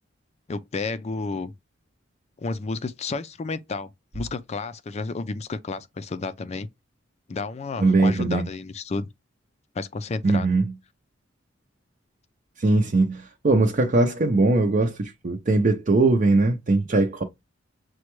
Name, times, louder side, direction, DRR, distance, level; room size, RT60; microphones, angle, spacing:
voice 1, 0.5-1.5 2.4-3.9 4.1-6.7 7.3-9.1 9.8-10.5, left 3 dB, 35° left, 0.4 m, -31 dB
voice 2, 7.8-8.4 10.2-10.7 12.6-17.2, right 2 dB, 45° right, 0.6 m, -20 dB
6.2 x 2.2 x 3.0 m
head